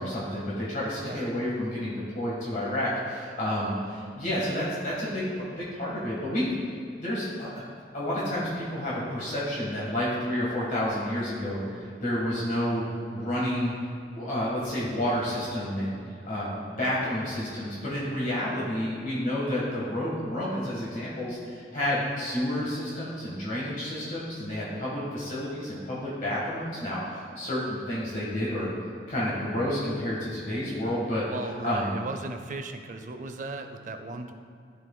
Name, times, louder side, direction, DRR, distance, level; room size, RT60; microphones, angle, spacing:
voice 1, 0.0-6.6 7.0-7.5 7.9-12.8 13.1-13.7 14.1-15.9 16.2-28.7 29.1-31.2 31.6-31.9, left 1 dB, 45° left, -7 dB, 1.4 m, -30 dB
voice 2, 1.0-1.3 31.3-34.3, right 3 dB, 45° right, 6 dB, 0.5 m, -36 dB
13.5 x 4.6 x 2.2 m, 2.3 s
head